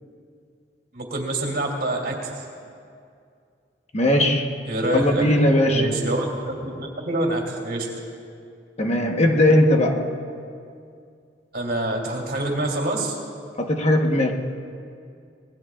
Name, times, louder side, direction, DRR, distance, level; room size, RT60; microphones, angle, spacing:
voice 1, 0.9-2.2 4.7-5.2 5.7-7.9 11.5-13.2, right 1 dB, 60° right, 1 dB, 2.9 m, -26 dB
voice 2, 3.9-4.5 4.9-5.9 8.8-10.2 13.6-14.3, left 1 dB, 40° left, 2 dB, 1.2 m, -19 dB
25.5 x 19.5 x 2.4 m, 2.4 s
head